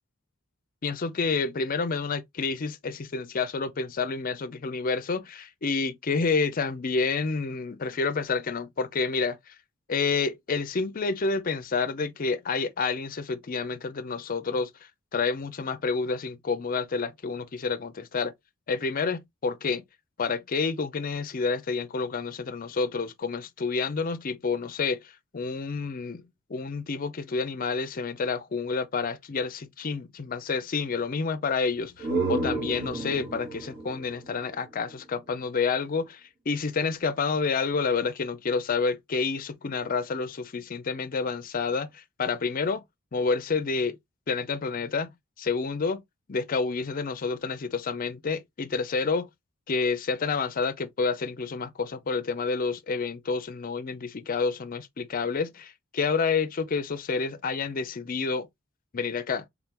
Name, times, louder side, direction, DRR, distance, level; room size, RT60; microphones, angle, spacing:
voice 1, 0.8-9.5 9.9-14.7 15.1-18.3 18.7-19.8 20.2-42.8 43.1-44.0 44.3-45.1 45.4-46.0 46.3-49.3 49.7-58.5 58.9-59.4, left 4 dB, 40° left, 0.5 m, -29 dB
sound 1, 31.7-35.4, right 3 dB, 50° right, 1.6 m, -32 dB
3.6 x 3.6 x 2.9 m
head